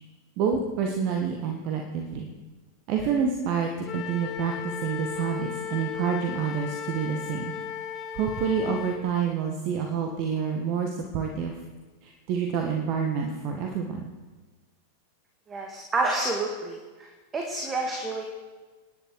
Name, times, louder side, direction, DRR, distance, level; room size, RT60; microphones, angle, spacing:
voice 1, 0.4-2.3 2.9-7.5 8.1-11.6 12.0-14.1, right 6 dB, 45° right, 2 dB, 1.6 m, -28 dB
Wind instrument woodwind instrument, 3.9-9.0, left 8 dB, 30° left, 1.8 m, -36 dB
voice 2, 15.5-18.2, right 2 dB, 20° right, 1 dB, 2.1 m, -29 dB
26.5 x 10.5 x 4.9 m, 1.3 s
figure-of-eight pair, 90°, 0 cm